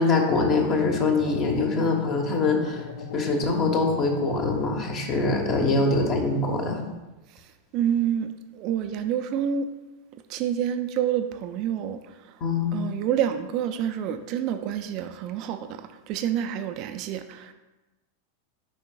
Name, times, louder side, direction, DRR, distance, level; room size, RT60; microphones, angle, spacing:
voice 1, 0.0-2.8 3.1-6.8 12.4-12.7, left 3 dB, 35° left, 2 dB, 1.1 m, -23 dB
sound 1, 0.6-4.9, left 6 dB, 60° left, 0.5 m, -39 dB
voice 2, 7.7-8.3 8.5-9.7 10.3-12.0 12.7-17.5, right 9 dB, 40° right, 8 dB, 0.4 m, -28 dB
8.8 x 5.2 x 2.4 m, 1.1 s
figure-of-eight pair, 90°, 0 cm